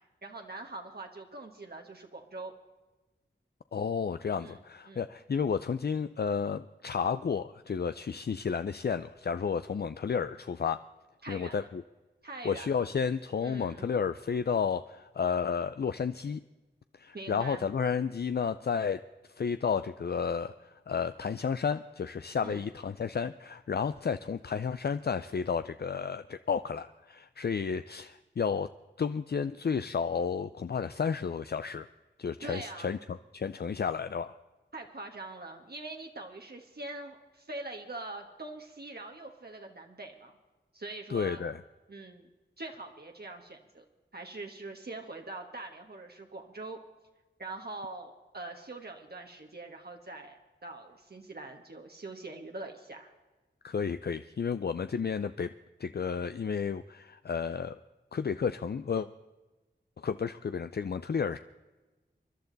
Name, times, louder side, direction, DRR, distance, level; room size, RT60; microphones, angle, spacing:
voice 1, 0.0-2.5 4.4-4.6 4.9-5.1 11.2-11.6 12.2-12.7 13.4-13.9 17.1-17.7 22.4-22.7 32.4-32.9 34.7-40.4 40.7-41.4 41.9-42.3 42.6-43.8 44.1-46.8 47.4-53.1, right 2 dB, 55° right, 2 dB, 1.4 m, -43 dB
voice 2, 3.7-10.8 11.3-11.8 12.4-16.4 16.9-19.0 19.3-28.7 29.0-31.9 32.2-34.3 41.1-41.6 53.6-55.5 55.8-57.8 58.1-59.1 60.0-61.4, left 6 dB, 55° left, 11 dB, 0.4 m, -32 dB
24.5 x 11.5 x 4.0 m, 1.2 s
wide cardioid pair, 65°, 19 cm